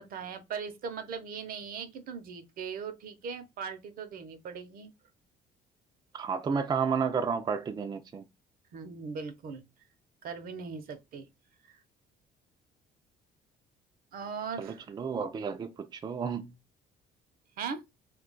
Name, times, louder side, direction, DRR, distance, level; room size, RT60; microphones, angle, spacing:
voice 1, 0.0-4.9 8.7-9.6 10.2-11.3 11.6-11.7 14.1-14.8 17.6-17.8, right 6 dB, 60° right, 0.6 m, -39 dB
voice 2, 6.1-8.2 14.6-16.5, right 6 dB, 25° right, 0.4 m, -31 dB
2.3 x 2.3 x 3.8 m
cardioid pair, 110°, 17 cm